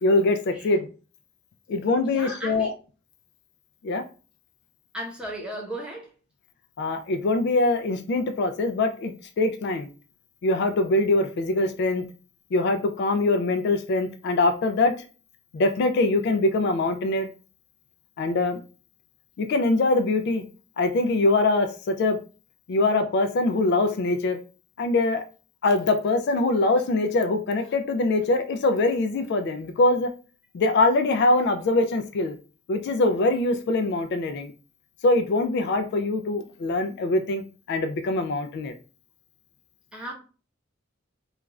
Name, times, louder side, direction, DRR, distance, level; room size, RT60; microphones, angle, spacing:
voice 1, 0.0-0.9 1.7-2.7 3.8-4.0 6.8-9.9 10.4-12.0 12.5-14.9 15.5-17.3 18.2-18.6 19.4-20.4 20.8-22.2 22.7-24.4 24.8-25.2 25.6-30.1 30.5-32.4 32.7-34.5 35.0-37.4 37.7-38.7, left 2 dB, 55° left, 0.3 m, -23 dB
voice 2, 2.0-2.7 4.9-6.1 39.9-40.1, right 1 dB, 5° right, 0.7 m, -35 dB
2.4 x 2.3 x 3.0 m
head